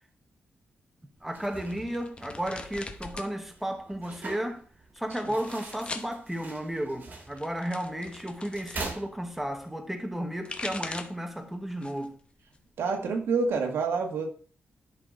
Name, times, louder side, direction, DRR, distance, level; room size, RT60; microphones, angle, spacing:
voice 1, 1.2-4.6 4.9-12.2, equal, 5° right, 1.2 m, -33 dB
sound 1, 1.2-9.7, right 3 dB, 50° right, 1.8 m, -44 dB
sound 2, 1.6-3.3 3.6-4.3 5.0-6.1 7.1-8.9 10.1-11.3 11.7-12.2 12.5-13.5, left 3 dB, 25° left, 1.0 m, -41 dB
voice 2, 12.8-14.3, right 4 dB, 80° right, 1.6 m, -27 dB
11.0 x 5.8 x 3.8 m
wide cardioid pair, 135°, 4 cm